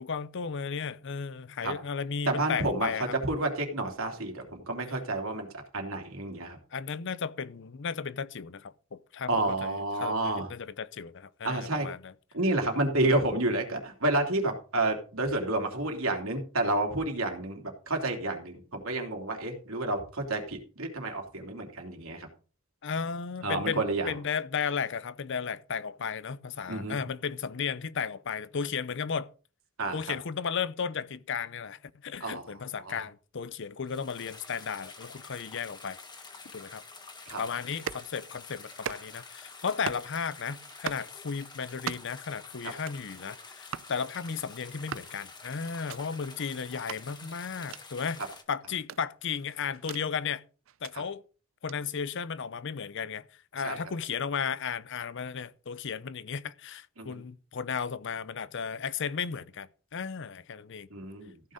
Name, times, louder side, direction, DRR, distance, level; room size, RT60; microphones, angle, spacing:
voice 1, 0.0-3.2 6.7-12.1 22.8-29.3 29.9-36.0 36.5-36.8 37.4-48.2 48.5-50.4 50.8-51.2 51.6-53.3 53.5-60.9, left 6 dB, 60° left, 0.6 m, -34 dB
voice 2, 2.2-6.6 9.3-10.5 11.4-11.9 12.3-22.3 23.4-24.1 26.7-27.0 29.8-30.1 32.2-32.5 32.8-33.0 37.3-37.4 50.9-51.0 53.6-53.8 57.0-57.2 60.9-61.5, right 2 dB, 80° right, 3.0 m, -30 dB
sound 1, 33.9-48.4, left 4 dB, 20° left, 1.5 m, -48 dB
sound 2, 37.7-38.1 38.7-39.3 39.7-40.1 40.7-41.1 41.7-42.2 42.7-43.0 43.7-43.9 44.7-45.1 45.7-46.0 46.7-47.0 47.7-47.8 48.7-50.0 50.7-50.9 51.7-51.8, right 8 dB, 65° right, 0.5 m, -40 dB
14.5 x 6.5 x 5.1 m
head